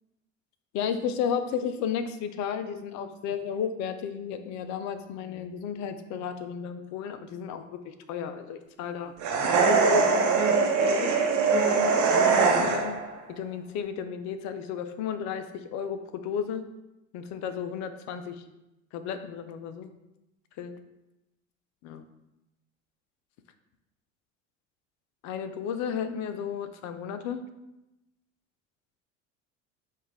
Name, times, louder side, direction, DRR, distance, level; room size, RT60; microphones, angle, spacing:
voice 1, 0.7-9.1 9.7-11.2 11.7-13.0 13.3-16.6 17.1-18.4 18.9-19.9 20.6-20.8 21.8-22.0 25.2-27.4, left 7 dB, 50° left, 9 dB, 0.5 m, -33 dB
sound 1, 9.2-13.1, right 4 dB, 50° right, 0.9 m, -22 dB
5.3 x 2.4 x 3.3 m, 0.95 s
hypercardioid pair, 65°, 37 cm